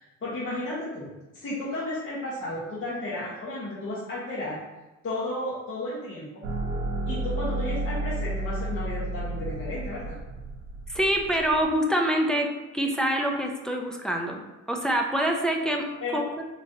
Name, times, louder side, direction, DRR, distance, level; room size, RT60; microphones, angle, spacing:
voice 1, 0.0-4.6 5.0-6.4 7.1-10.2 16.0-16.2, left 1 dB, 45° left, -8 dB, 1.1 m, -33 dB
sound 1, 6.4-11.7, right 2 dB, 80° right, 0.9 m, -32 dB
voice 2, 10.9-14.4 14.7-15.9 16.1-16.4, right 1 dB, ahead, 1 dB, 0.5 m, -25 dB
3.7 x 3.1 x 2.6 m, 1.1 s
cardioid pair, 90°, 30 cm